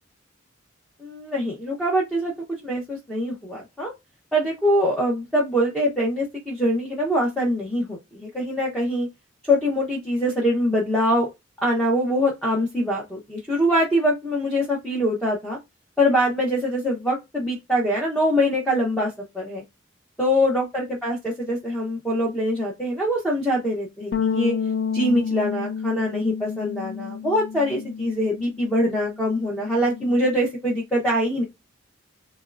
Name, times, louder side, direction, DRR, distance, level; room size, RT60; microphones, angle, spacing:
voice 1, 1.0-2.3 2.6-3.9 4.3-9.1 9.5-11.3 11.6-15.6 16.0-19.6 20.2-24.5 24.9-31.4, equal, 5° left, 0.8 m, -23 dB
sound 1, 24.1-28.7 29.0-30.4, left 6 dB, 65° left, 0.4 m, -30 dB
3.5 x 3.1 x 2.5 m
head